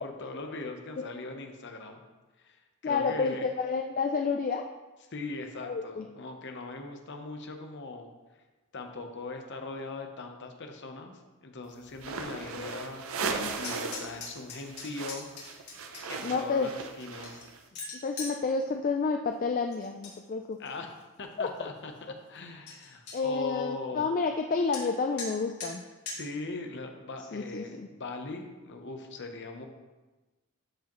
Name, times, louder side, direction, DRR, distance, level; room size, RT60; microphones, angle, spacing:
voice 1, 0.0-2.0 2.4-2.6 2.8-3.5 5.1-8.1 8.7-13.0 13.3-15.3 15.6-15.8 16.1-16.7 17.0-17.4 17.7-17.8 20.6-20.9 21.2-24.1 26.1-29.7, left 3 dB, 55° left, 4 dB, 0.9 m, -40 dB
voice 2, 2.8-4.7 5.6-6.1 12.5-12.8 13.2-13.5 16.2-16.7 18.0-20.6 21.4-21.7 23.1-25.8 27.3-27.9, left 4 dB, 40° left, 4 dB, 0.3 m, -30 dB
sound 1, 11.9-14.2 14.4-17.6, right 5 dB, 65° right, 0.6 m, -37 dB
sound 2, 13.6-16.2 16.8-18.4 19.7-20.2 20.5-21.0 21.5-21.6 22.0-22.1 22.4-22.5 22.7-23.2 24.7-24.8 25.2-25.3 25.6-25.7 26.1-26.2, left 4 dB, 90° left, 2.5 m, -41 dB
12.5 x 4.8 x 3.1 m, 1.2 s
head